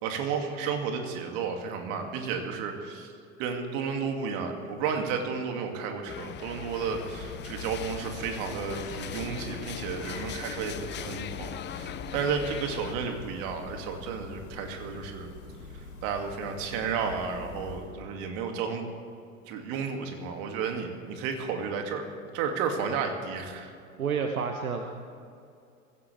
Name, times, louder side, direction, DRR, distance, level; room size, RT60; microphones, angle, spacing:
voice 1, 0.0-3.1 3.4-15.3 15.7-18.8 19.5-22.0 22.3-23.7, right 6 dB, 50° right, 4 dB, 2.5 m, -32 dB
sound 1, 6.1-12.9, left 10 dB, 25° left, 0.7 m, -40 dB
sound 2, 6.4-18.1, left 3 dB, 65° left, 3.9 m, -44 dB
voice 2, 24.0-25.1, right 5 dB, 80° right, 5 dB, 1.1 m, -30 dB
24.0 x 15.5 x 3.5 m, 2.4 s
figure-of-eight pair, 85°, 42 cm